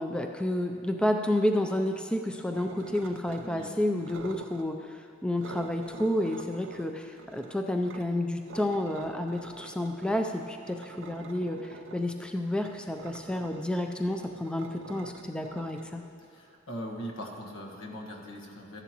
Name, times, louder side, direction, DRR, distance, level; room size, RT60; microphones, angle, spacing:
voice 1, 0.0-16.0, left 1 dB, 5° left, 4 dB, 0.4 m, -30 dB
sound 1, 2.5-3.7 4.0-4.7 5.4-8.0 8.5-16.5, right 4 dB, 65° right, 0.5 m, -47 dB
voice 2, 3.4-3.8 16.3-18.8, equal, 75° left, 0 dB, 1.5 m, -40 dB
14.5 x 11.0 x 3.0 m, 2.7 s
head